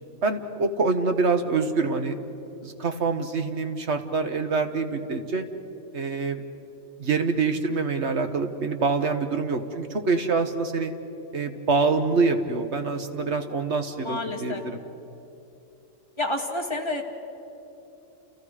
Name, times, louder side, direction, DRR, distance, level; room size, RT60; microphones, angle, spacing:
voice 1, 0.2-2.2 2.6-5.5 5.9-6.4 7.0-10.9 11.3-14.8, right 4 dB, 50° right, 6 dB, 1.6 m, -25 dB
voice 2, 14.0-14.6 16.2-17.0, left 2 dB, 20° left, 0 dB, 2.4 m, -29 dB
30.0 x 29.5 x 5.0 m, 2.9 s
omnidirectional pair, 1.5 m